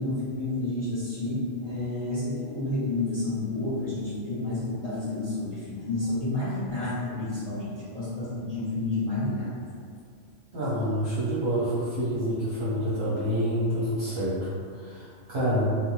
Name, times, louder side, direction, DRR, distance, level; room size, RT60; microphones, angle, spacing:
voice 1, 0.0-9.5, left 2 dB, 45° left, -12 dB, 0.5 m, -30 dB
voice 2, 10.5-15.7, equal, 50° right, -10 dB, 0.7 m, -27 dB
2.6 x 2.1 x 3.0 m, 2.2 s
omnidirectional pair, 1.5 m